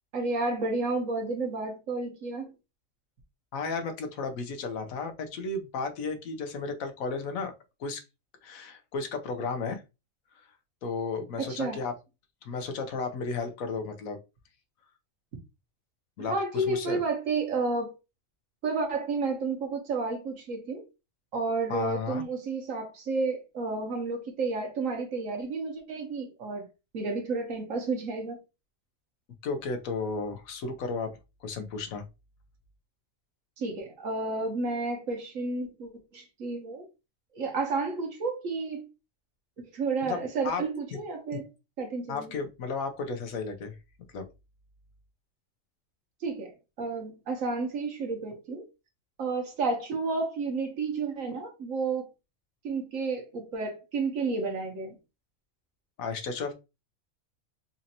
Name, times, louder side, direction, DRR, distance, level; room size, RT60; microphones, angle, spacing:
voice 1, 0.1-2.5 11.4-11.8 16.3-17.9 18.6-20.8 21.3-26.7 26.9-28.4 33.6-36.9 37.3-38.9 39.7-41.5 41.8-42.3 46.2-48.7 49.2-52.1 52.6-54.9, right 3 dB, 75° right, 1.5 m, -31 dB
voice 2, 3.5-7.5 7.8-8.0 8.4-9.8 10.8-11.9 12.4-14.2 16.2-17.0 21.7-22.2 29.4-31.1 31.4-32.0 40.0-40.6 40.9-41.0 41.3-41.4 42.1-43.7 44.1-44.2 56.0-56.5, left 4 dB, 85° left, 1.2 m, -33 dB
4.1 x 2.6 x 2.8 m
omnidirectional pair, 1.4 m